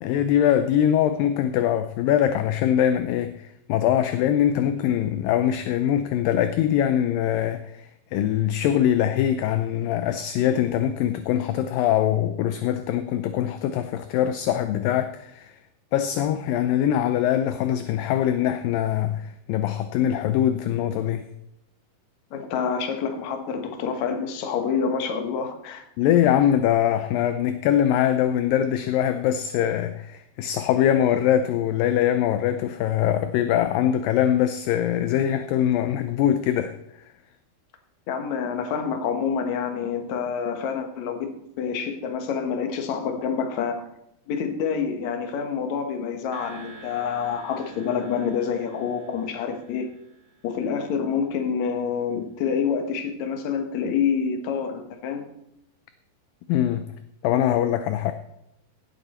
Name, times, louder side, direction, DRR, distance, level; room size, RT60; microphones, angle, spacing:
voice 1, 0.0-15.6 15.9-21.2 26.0-36.8 56.5-56.9 57.2-58.1, left 10 dB, 80° left, 2.1 m, -23 dB
voice 2, 22.3-25.8 38.1-43.8 44.3-49.9 50.4-55.3, left 6 dB, 60° left, 2.2 m, -27 dB
sound 1, 46.3-50.8, right 3 dB, 30° right, 3.5 m, -48 dB
17.0 x 8.4 x 4.3 m
omnidirectional pair, 4.5 m